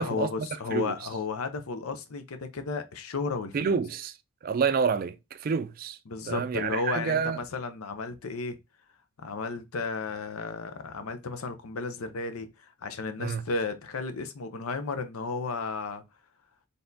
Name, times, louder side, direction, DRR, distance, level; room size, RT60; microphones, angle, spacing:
voice 1, 0.0-3.7 6.1-8.6 9.2-12.5 12.8-16.0, left 4 dB, 85° left, 0.7 m, -33 dB
voice 2, 3.5-4.1 4.4-6.0 6.3-7.4 13.2-13.4, right 6 dB, 40° right, 0.3 m, -28 dB
4.1 x 3.4 x 2.7 m
head